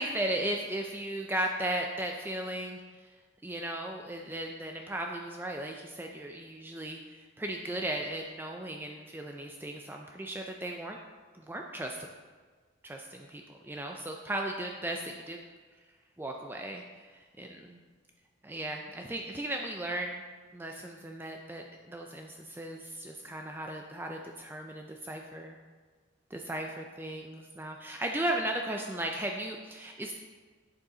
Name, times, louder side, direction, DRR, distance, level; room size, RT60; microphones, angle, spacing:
voice 1, 0.0-3.0 3.4-11.0 11.3-12.0 12.8-15.4 16.2-17.8 18.4-20.2 20.5-25.6 26.3-30.1, right 1 dB, 10° right, 2 dB, 0.4 m, -36 dB
8.6 x 6.9 x 3.8 m, 1.5 s
head